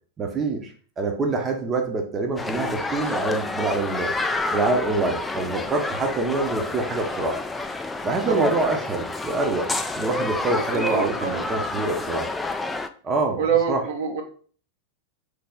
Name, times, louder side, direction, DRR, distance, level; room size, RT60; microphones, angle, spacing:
voice 1, 0.2-4.2 4.5-7.4 8.0-9.7 9.9-12.3 13.0-13.4 13.7-13.8, right 3 dB, 25° right, 3 dB, 0.8 m, -25 dB
sound 1, 2.4-12.9, left 3 dB, 10° left, 0.3 m, -29 dB
voice 2, 10.7-11.5 13.4-14.2, right 6 dB, 55° right, 3 dB, 0.7 m, -25 dB
4.0 x 3.3 x 3.7 m, 0.43 s
figure-of-eight pair, 90°, 0 cm